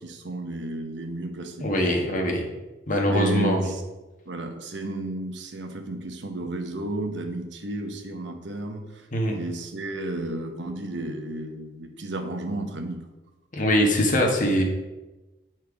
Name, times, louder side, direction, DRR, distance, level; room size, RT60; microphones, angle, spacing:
voice 1, 0.0-1.7 3.1-3.8 4.3-13.0, right 2 dB, 75° right, 4 dB, 1.0 m, -32 dB
voice 2, 1.6-2.5 2.9-3.7 9.1-9.4 13.5-14.6, equal, 45° left, 1 dB, 1.4 m, -22 dB
8.7 x 4.5 x 4.8 m, 1.1 s
head